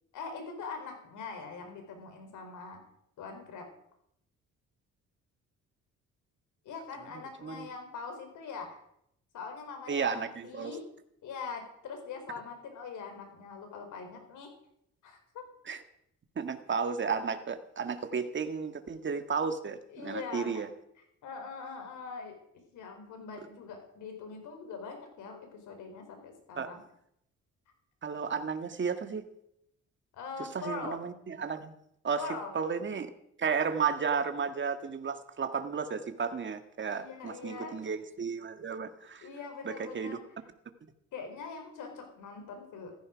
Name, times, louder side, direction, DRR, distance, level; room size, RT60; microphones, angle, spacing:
voice 1, 0.1-2.8 3.2-3.7 6.6-8.8 9.3-10.8 11.2-14.5 15.0-15.4 19.9-20.6 21.2-26.8 30.1-31.0 32.2-32.5 36.9-37.8 39.2-40.2 41.1-43.0, left 5 dB, 80° left, 5 dB, 4.6 m, -42 dB
voice 2, 9.9-10.8 15.7-15.8 16.4-20.7 26.6-26.7 28.0-29.3 30.4-31.7 32.0-32.2 32.5-33.1 33.4-39.3 39.6-40.2, right 6 dB, 40° right, 8 dB, 1.8 m, -33 dB
15.5 x 14.5 x 5.2 m, 0.75 s
cardioid pair, 90°, 30 cm